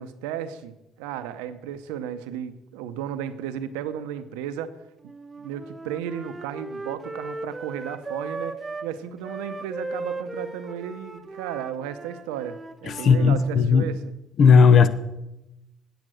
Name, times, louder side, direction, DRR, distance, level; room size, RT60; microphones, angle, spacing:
voice 1, 0.0-4.8 5.4-8.6 8.8-14.0, right 9 dB, 85° right, 12 dB, 0.7 m, -34 dB
Wind instrument woodwind instrument, 5.0-8.9 9.2-13.5, right 2 dB, 20° right, 0.8 m, -37 dB
voice 2, 12.9-13.9 14.4-14.9, left 5 dB, 55° left, 13 dB, 0.8 m, -16 dB
9.2 x 7.0 x 6.3 m, 0.92 s
supercardioid pair, 65°, 0 cm